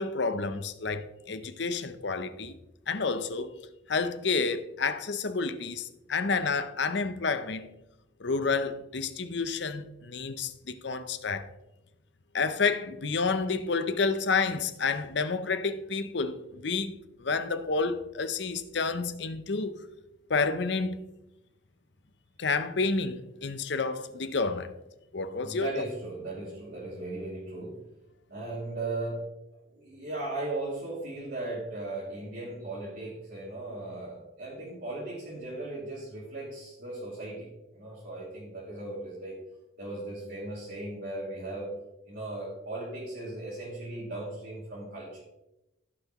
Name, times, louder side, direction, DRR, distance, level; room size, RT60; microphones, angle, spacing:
voice 1, 0.0-2.6 2.9-3.5 3.9-7.7 8.2-11.5 12.3-16.9 17.2-19.8 20.3-21.0 22.4-24.7 25.1-25.9, left 4 dB, 60° left, 0.7 m, -30 dB
voice 2, 25.4-27.8 28.3-29.2 29.7-39.4 39.8-41.7 42.1-45.2, right 2 dB, 55° right, 2.7 m, -37 dB
15.5 x 5.8 x 3.0 m
head